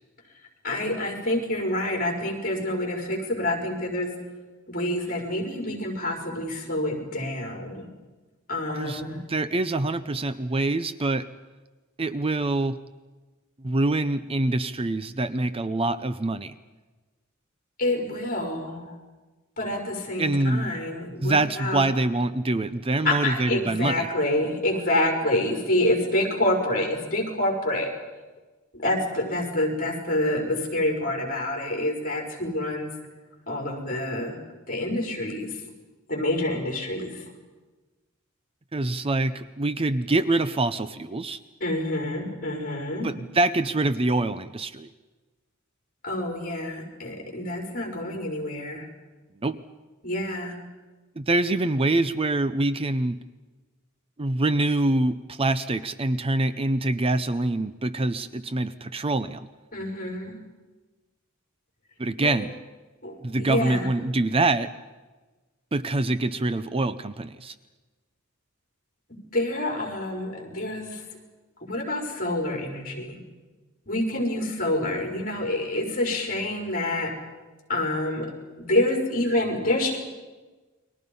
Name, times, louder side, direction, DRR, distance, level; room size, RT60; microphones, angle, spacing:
voice 1, 0.6-4.1 4.7-7.9 8.5-9.2 17.8-18.9 19.6-21.8 23.0-27.9 28.7-32.9 33.5-34.4 34.7-35.5 36.1-37.1 41.6-43.1 46.0-48.9 50.0-50.6 59.7-60.3 62.2-62.4 63.0-63.9 69.3-71.0 71.6-73.2 73.9-77.1 77.7-78.3 78.6-80.0, left 1 dB, 45° left, 1 dB, 5.5 m, -27 dB
voice 2, 9.3-11.3 12.0-12.8 13.6-16.5 20.2-20.7 21.2-24.1 38.7-41.4 43.0-44.9 49.4-49.6 51.2-53.2 54.2-59.5 62.0-62.5 63.2-64.7 65.7-67.5, right 2 dB, 25° right, 12 dB, 0.6 m, -25 dB
30.0 x 23.0 x 5.5 m, 1.2 s
head